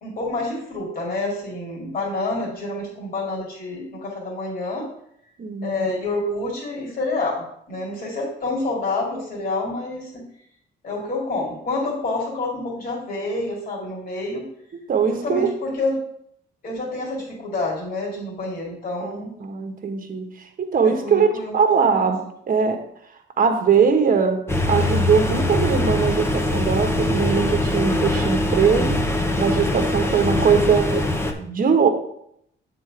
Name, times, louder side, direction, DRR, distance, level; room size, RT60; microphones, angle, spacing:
voice 1, 0.0-4.9 5.6-10.2 10.8-14.4 15.1-16.0 16.6-19.3 20.8-22.1 30.0-30.1 30.7-31.0, left 2 dB, 45° left, -3 dB, 2.2 m, -28 dB
voice 2, 5.4-5.9 14.9-15.6 19.0-21.3 21.5-22.9 23.4-29.0 29.4-31.0 31.4-31.9, right 6 dB, 45° right, 6 dB, 1.1 m, -21 dB
sound 1, 24.5-31.3, left 1 dB, 15° left, 0.8 m, -22 dB
7.3 x 3.9 x 4.9 m, 0.73 s
cardioid pair, 90°, 20 cm